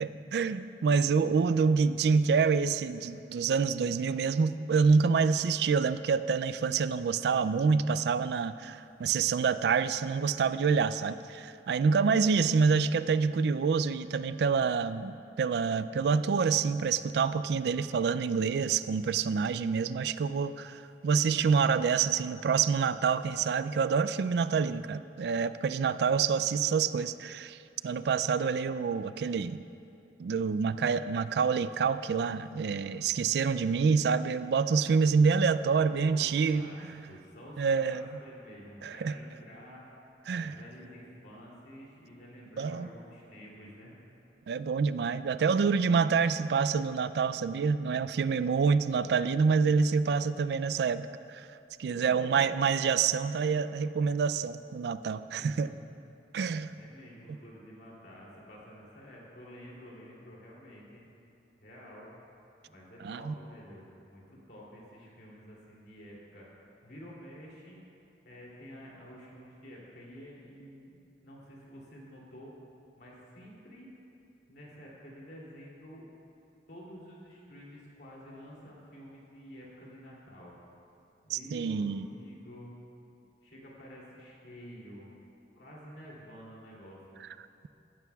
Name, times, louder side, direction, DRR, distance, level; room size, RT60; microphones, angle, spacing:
voice 1, 0.0-27.6 27.8-29.6 30.2-37.1 37.6-38.1 38.8-39.2 40.3-40.5 42.6-42.9 44.5-51.5 51.8-55.7 56.3-56.7 63.0-63.3 81.3-82.1, right 5 dB, 65° right, 14 dB, 0.3 m, -27 dB
voice 2, 1.4-1.7 35.7-36.8 37.0-39.8 40.3-43.9 51.9-52.5 55.1-55.9 56.4-61.1 61.6-62.1 62.7-66.5 66.8-67.8 68.2-72.5 73.0-73.9 74.5-76.0 76.7-80.6 81.2-82.8 83.4-85.1 85.5-87.2, equal, 60° left, -4 dB, 2.7 m, -50 dB
15.5 x 12.5 x 2.3 m, 2.7 s
head